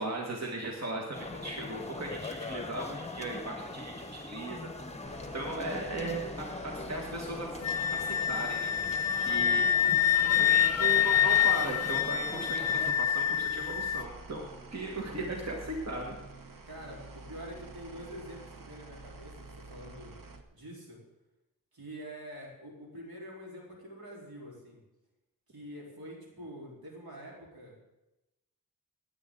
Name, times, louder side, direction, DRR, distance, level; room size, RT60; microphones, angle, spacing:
voice 1, 0.0-4.7 5.3-7.5 7.9-8.7 9.2-9.7 10.4-16.2, right 2 dB, 45° right, 0 dB, 1.9 m, -37 dB
sound 1, 1.1-12.9, left 3 dB, 20° left, 1.0 m, -41 dB
sound 2, 5.1-20.4, right 3 dB, 65° right, 1.1 m, -49 dB
Wind instrument woodwind instrument, 7.6-14.0, left 10 dB, 45° left, 0.4 m, -26 dB
voice 2, 16.6-20.1 20.5-21.0 21.7-24.8 25.5-27.8, equal, 85° right, -3 dB, 4.1 m, -46 dB
17.0 x 9.6 x 3.9 m, 0.97 s
wide cardioid pair, 75°, 36 cm